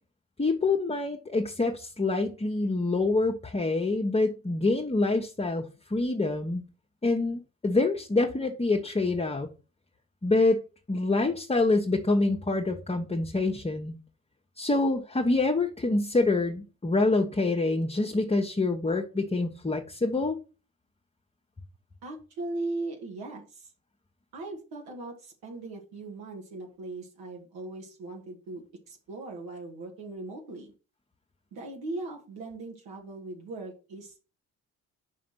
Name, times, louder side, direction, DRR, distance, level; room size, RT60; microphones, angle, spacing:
voice 1, 0.4-6.6 7.0-9.5 10.2-10.6 10.9-14.0 14.6-20.4, left 2 dB, 15° left, 1.1 m, -26 dB
voice 2, 22.0-23.7 24.3-28.6 28.9-30.7 31.5-34.2, right 2 dB, 65° right, 2.1 m, -39 dB
5.5 x 4.9 x 5.8 m
hypercardioid pair, 50°, 39 cm